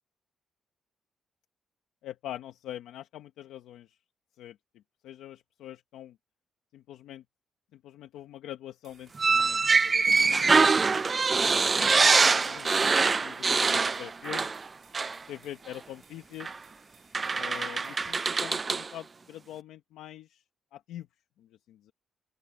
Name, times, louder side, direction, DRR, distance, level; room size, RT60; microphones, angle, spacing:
voice 1, 2.0-4.0 4.4-6.2 6.7-7.2 7.7-10.7 11.4-12.8 13.2-14.6 15.3-16.6 17.3-20.4 20.7-21.1 21.4-21.9, left 12 dB, 90° left, 1.2 m, -44 dB
sound 1, 8.8-18.5, right 8 dB, 65° right, 4.1 m, -63 dB
sound 2, 8.9-18.2, left 1 dB, 5° left, 3.7 m, -60 dB
sound 3, 9.2-14.7 14.9-15.2 16.4-16.5 17.1-18.9, right 4 dB, 35° right, 0.4 m, -24 dB
open air
cardioid pair, 90°, 0 cm